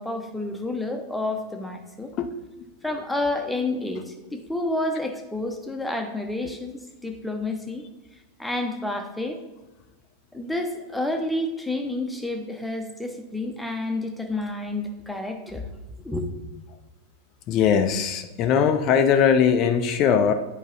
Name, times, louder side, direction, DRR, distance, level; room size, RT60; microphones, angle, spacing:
voice 1, 0.0-2.1 2.8-7.8 8.4-9.4 10.3-15.6 16.0-16.3, left 2 dB, 5° left, 4 dB, 1.0 m, -29 dB
voice 2, 17.5-20.3, left 7 dB, 35° left, 7 dB, 0.6 m, -20 dB
9.1 x 5.0 x 4.2 m, 1.1 s
figure-of-eight pair, 90°, 0 cm